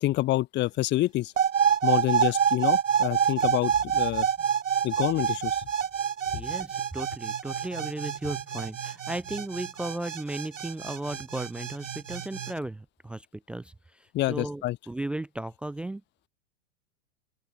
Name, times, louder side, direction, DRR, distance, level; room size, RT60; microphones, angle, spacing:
voice 1, 0.0-1.3 1.8-4.3 4.8-5.6 14.1-14.8, left 16 dB, 30° left, 1.2 m, -27 dB
sound 1, 1.4-12.5, right 8 dB, 85° right, 0.7 m, -27 dB
voice 2, 6.3-16.0, right 1 dB, 5° right, 0.4 m, -36 dB
open air
figure-of-eight pair, 95°, 37 cm